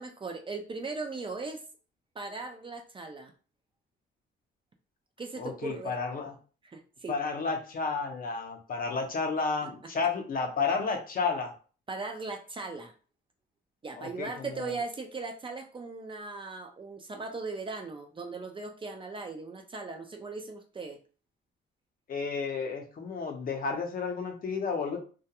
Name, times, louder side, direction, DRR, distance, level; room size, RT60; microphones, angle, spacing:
voice 1, 0.0-1.6 2.2-3.3 5.2-6.0 6.6-7.1 11.9-12.9 13.8-21.0, right 3 dB, 25° right, 4 dB, 0.4 m, -38 dB
voice 2, 5.4-6.3 7.1-11.5 14.0-14.8 22.1-25.0, left 4 dB, 45° left, 3 dB, 0.7 m, -32 dB
2.3 x 2.2 x 2.8 m, 0.38 s
cardioid pair, 90°, 20 cm